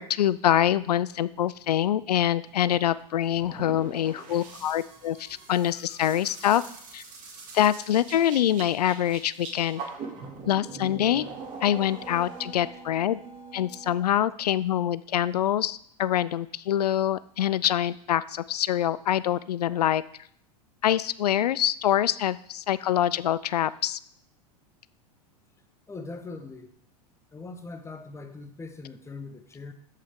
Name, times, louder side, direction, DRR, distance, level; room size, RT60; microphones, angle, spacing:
voice 1, 0.0-6.6 6.9-7.0 7.5-9.8 10.5-11.3 11.6-13.2 13.5-20.0 20.8-24.0, left 11 dB, 85° left, 17 dB, 0.4 m, -25 dB
sound 1, 2.5-14.0, right 4 dB, 40° right, 2.3 m, -42 dB
voice 2, 25.9-26.7 27.3-29.7, left 3 dB, 15° left, 7 dB, 1.1 m, -41 dB
13.5 x 5.6 x 3.6 m, 0.64 s
hypercardioid pair, 100°, 20 cm